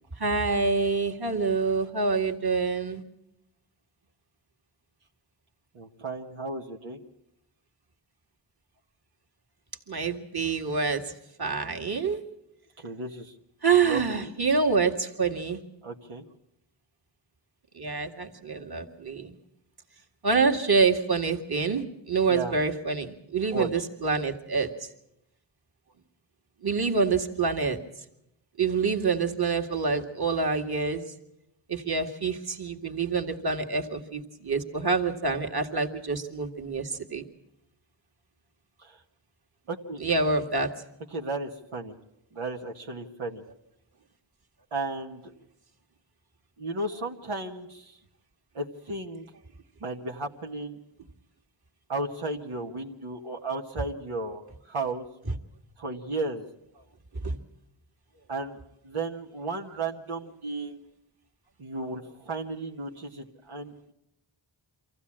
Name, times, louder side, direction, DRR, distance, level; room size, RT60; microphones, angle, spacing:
voice 1, 0.2-3.0 9.9-11.0 11.4-12.2 13.6-15.6 17.8-19.4 20.2-24.7 26.6-27.8 28.6-31.0 31.7-37.3 40.0-40.7 57.2-57.4, right 4 dB, 50° right, 3 dB, 2.0 m, -26 dB
voice 2, 5.7-7.0 12.8-13.3 13.8-14.3 15.8-16.2 22.3-22.5 23.5-23.7 38.8-39.0 39.7-40.0 41.1-41.9 42.3-43.4 44.7-45.3 46.6-48.0 48.5-49.3 49.8-50.8 51.9-55.0 55.8-56.5 58.3-60.8 61.6-63.9, right 2 dB, 90° right, 0 dB, 1.5 m, -34 dB
24.5 x 15.0 x 8.7 m, 0.84 s
cardioid pair, 50°, 49 cm